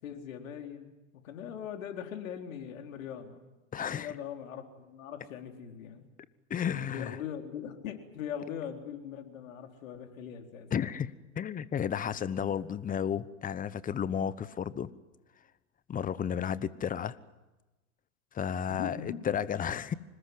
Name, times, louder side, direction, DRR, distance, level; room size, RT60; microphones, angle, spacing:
voice 1, 0.0-3.5 3.8-6.1 6.9-11.0 18.7-19.2, left 8 dB, 70° left, 4 dB, 4.0 m, -41 dB
voice 2, 3.7-4.1 6.5-7.2 10.7-11.1 11.4-14.9 15.9-17.1 18.3-19.9, left 8 dB, 20° left, 17 dB, 1.0 m, -32 dB
25.5 x 20.5 x 9.6 m, 1.1 s
hypercardioid pair, 100°, 41 cm